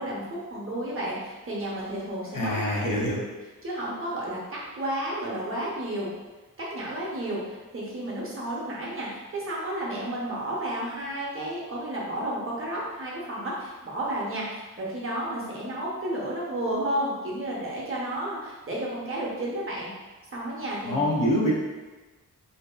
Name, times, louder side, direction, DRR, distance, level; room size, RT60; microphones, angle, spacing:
voice 1, 0.0-2.6 3.6-6.1 6.6-19.9 20.3-21.1, right 1 dB, 40° right, -5 dB, 0.7 m, -32 dB
voice 2, 2.3-3.2 20.9-21.6, equal, 75° left, -4 dB, 0.7 m, -25 dB
2.6 x 2.3 x 2.3 m, 1.2 s
wide cardioid pair, 110°, 33 cm